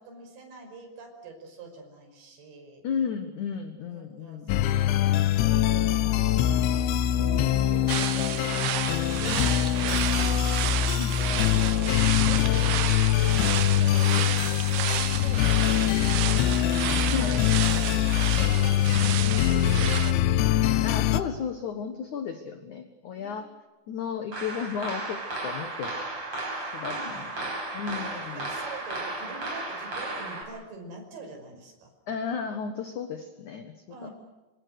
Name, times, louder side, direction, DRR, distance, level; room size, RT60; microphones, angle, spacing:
voice 1, 0.0-2.9 3.9-8.6 8.9-9.6 9.8-10.5 11.4-12.0 12.2-16.5 17.0-17.3 17.8-20.7 23.1-23.4 26.8-27.3 27.9-31.9 33.9-34.1, right 3 dB, 55° right, 2 dB, 7.1 m, -44 dB
voice 2, 2.8-4.6 9.3-9.5 11.0-11.2 17.1-17.4 20.8-23.5 23.9-25.9 26.7-28.5 32.1-34.1, left 6 dB, 65° left, 7 dB, 2.0 m, -34 dB
sound 1, 4.5-21.2, left 12 dB, 80° left, 3.3 m, -23 dB
sound 2, 7.9-20.1, right 14 dB, 75° right, 2.6 m, -31 dB
sound 3, 24.3-30.4, right 2 dB, 35° right, 6.0 m, -34 dB
26.0 x 25.5 x 6.6 m, 1.2 s
omnidirectional pair, 5.4 m